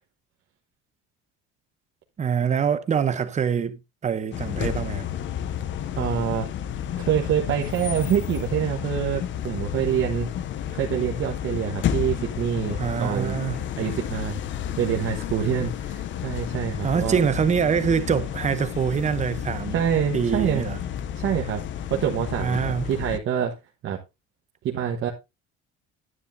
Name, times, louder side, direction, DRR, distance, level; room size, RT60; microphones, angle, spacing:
voice 1, 2.2-5.1 12.8-13.6 16.8-19.8 20.1-20.8 22.4-22.8, right 7 dB, 25° right, 0.8 m, -25 dB
sound 1, 4.3-23.2, left 10 dB, 40° left, 0.7 m, -31 dB
voice 2, 5.9-6.5 7.0-10.3 10.7-13.4 13.8-14.4 14.8-17.2 19.7-20.7 21.1-21.6 21.9-23.5 23.8-24.0 24.6-25.1, right 9 dB, 45° right, 1.3 m, -26 dB
9.9 x 9.8 x 2.7 m
cardioid pair, 155°, 29 cm